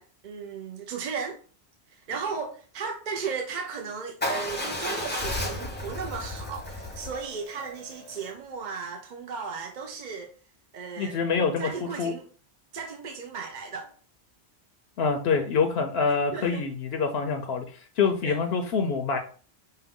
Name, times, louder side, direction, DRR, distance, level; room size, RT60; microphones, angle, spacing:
voice 1, 0.0-1.4 1.9-10.3 10.7-12.2 12.7-13.9 16.3-16.6 18.2-18.4, right 5 dB, 55° right, 0.6 m, -36 dB
Motorcycle / Engine starting / Idling, 4.2-8.3, left 1 dB, 10° left, 0.7 m, -33 dB
voice 2, 11.0-11.7 12.0-12.1 15.0-19.2, left 5 dB, 70° left, 0.8 m, -26 dB
5.5 x 2.2 x 3.5 m
omnidirectional pair, 1.1 m